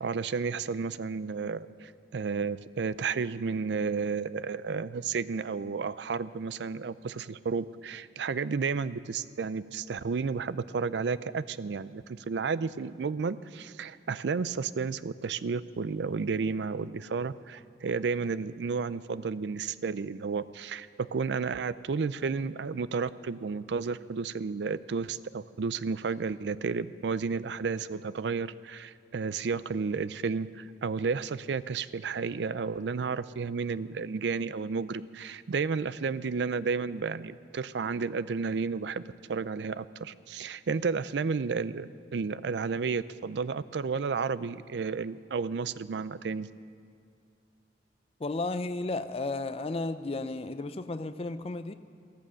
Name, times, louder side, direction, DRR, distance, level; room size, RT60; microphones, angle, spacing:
voice 1, 0.0-39.0 39.3-46.5, right 5 dB, 75° right, 17 dB, 0.4 m, -32 dB
voice 2, 48.2-51.7, left 2 dB, 35° left, 11 dB, 0.5 m, -33 dB
14.5 x 14.0 x 6.4 m, 2.3 s
head